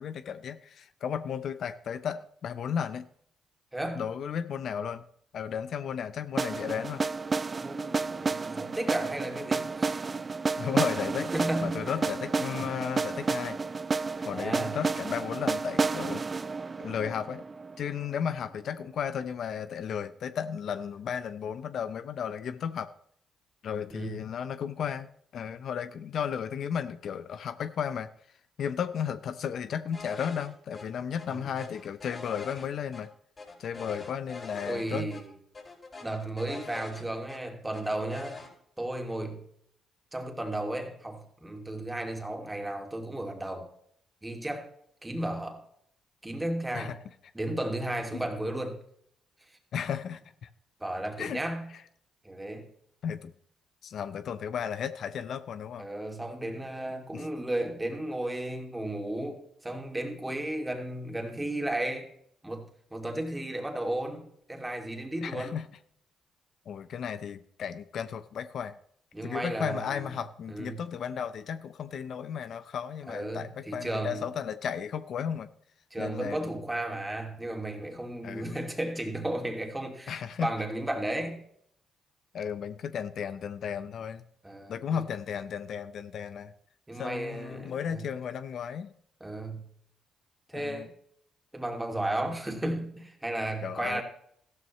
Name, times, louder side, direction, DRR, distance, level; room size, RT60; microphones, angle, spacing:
voice 1, 0.0-3.0 4.0-5.0 5.3-7.0 10.6-11.3 11.6-13.6 14.2-16.2 16.8-17.4 17.8-22.9 23.6-28.1 28.6-33.1 33.6-35.1 46.7-47.0 48.1-48.2 49.7-50.5 51.2-51.4 53.0-53.3 53.8-55.9 57.1-57.3 65.2-65.7 66.7-68.8 69.2-75.5 76.0-76.5 78.2-78.7 80.1-80.5 82.3-84.2 84.7-86.5 86.9-88.9 90.5-90.9 93.6-94.0, left 8 dB, 65° left, 0.6 m, -34 dB
voice 2, 3.7-4.0 7.6-10.1 11.2-11.9 14.3-14.8 23.9-24.1 31.3-31.4 34.6-35.3 36.0-38.4 38.8-39.4 40.1-43.7 44.2-44.7 45.0-45.6 46.2-47.0 47.3-48.8 50.8-51.7 52.2-52.6 55.8-62.1 62.4-65.5 69.1-70.1 70.5-70.8 73.1-74.3 75.9-81.4 84.4-85.0 86.9-88.0 89.2-89.6 90.5-90.9 91.5-94.0, right 1 dB, 10° right, 2.4 m, -34 dB
sound 1, 6.4-18.3, right 4 dB, 30° right, 0.4 m, -31 dB
sound 2, 29.9-30.5 30.7-30.8 31.2-33.0 33.4-34.8 35.1-35.2 35.5-37.4 37.7-38.5, left 3 dB, 35° left, 5.1 m, -44 dB
14.5 x 12.5 x 3.1 m
cardioid pair, 90°, 0 cm